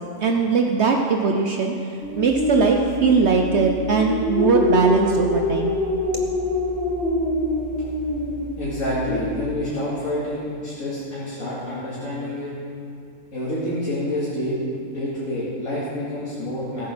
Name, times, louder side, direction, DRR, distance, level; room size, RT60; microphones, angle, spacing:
voice 1, 0.2-1.7 2.2-5.8, right 5 dB, 60° right, 2 dB, 1.0 m, -20 dB
sound 1, 2.0-9.4, left 2 dB, 55° left, 3.8 m, -25 dB
voice 2, 8.6-12.5 13.3-14.6 14.9-16.9, left 1 dB, 75° left, -10 dB, 2.8 m, -28 dB
14.5 x 8.6 x 6.1 m, 2.4 s
omnidirectional pair, 1.4 m